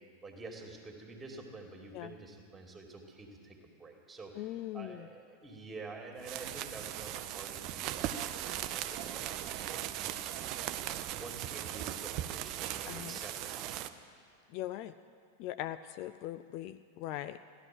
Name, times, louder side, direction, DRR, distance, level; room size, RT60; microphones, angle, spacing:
voice 1, 0.2-10.5 11.1-14.0, right 3 dB, 15° right, 2 dB, 2.5 m, -49 dB
voice 2, 4.4-5.1 12.9-13.2 14.5-14.9 15.4-17.5, left 13 dB, 45° left, 11 dB, 0.4 m, -40 dB
sound 1, 6.2-13.9, right 12 dB, 40° right, 0.6 m, -38 dB
15.0 x 11.5 x 7.7 m, 2.3 s
figure-of-eight pair, 90°, 0 cm